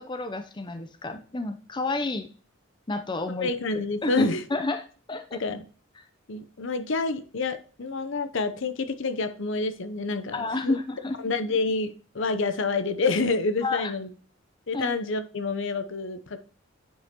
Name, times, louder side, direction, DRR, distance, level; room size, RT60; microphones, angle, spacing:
voice 1, 0.0-2.3 2.9-3.5 4.0-5.4 10.3-11.2 13.6-13.9 14.7-14.9, left 3 dB, 20° left, 8 dB, 0.5 m, -30 dB
voice 2, 3.4-4.4 5.3-5.6 6.3-10.8 11.2-14.1 14.7-16.4, left 3 dB, 60° left, 10 dB, 0.7 m, -28 dB
8.7 x 5.6 x 2.9 m, 0.37 s
head